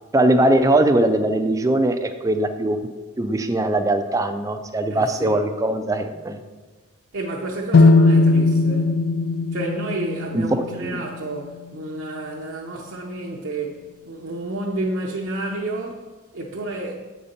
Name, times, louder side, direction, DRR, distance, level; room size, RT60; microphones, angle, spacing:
voice 1, 0.1-2.8 3.2-6.4 10.3-11.0, right 1 dB, 15° right, 0.4 m, -20 dB
voice 2, 4.9-5.4 7.1-9.0 9.5-16.9, right 2 dB, 60° right, 0.7 m, -30 dB
sound 1, 7.7-11.7, left 3 dB, 50° left, 0.4 m, -18 dB
7.8 x 4.1 x 5.1 m
head